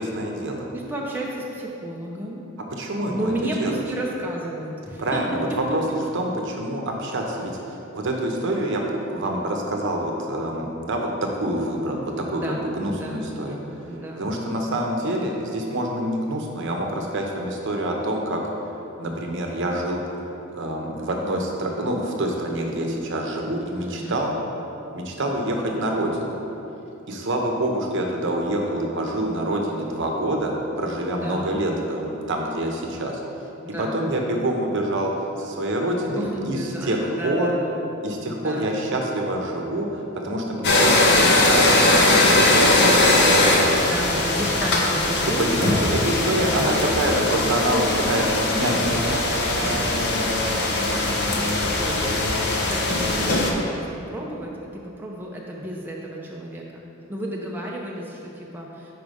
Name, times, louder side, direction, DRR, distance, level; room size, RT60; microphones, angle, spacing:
voice 1, 0.0-0.7 2.7-3.3 3.6-3.8 5.0-5.8 6.1-7.5 7.9-13.6 14.2-18.4 19.0-20.0 20.5-24.3 24.9-26.4 27.1-33.2 33.8-37.5 38.0-41.7 42.0-43.2 45.4-47.8 48.1-49.2, right 1 dB, 60° right, 1 dB, 0.7 m, -26 dB
voice 2, 0.7-2.4 3.1-5.2 12.3-13.3 13.8-14.3 23.8-24.2 31.1-31.6 33.6-34.1 35.8-37.8 38.3-38.7 43.8-45.8 46.5-47.3 47.7-56.8 57.1-59.0, right 1 dB, 10° right, -3 dB, 0.4 m, -33 dB
sound 1, 40.6-53.5, left 2 dB, 50° left, 0.6 m, -20 dB
4.8 x 4.7 x 5.2 m, 2.8 s
head